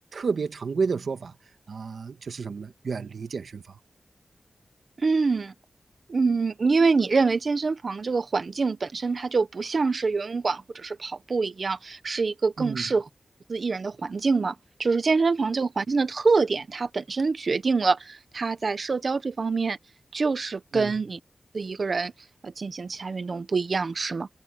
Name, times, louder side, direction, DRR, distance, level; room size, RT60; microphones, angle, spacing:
voice 1, 0.1-1.3 1.7-3.8 12.6-12.8 20.7-20.9, right 5 dB, 80° right, 1.6 m, -31 dB
voice 2, 5.0-5.5 6.1-13.0 13.5-19.8 20.1-21.2 21.5-22.1 22.4-24.3, right 4 dB, 55° right, 1.0 m, -25 dB
wide cardioid pair, 130°, 0 cm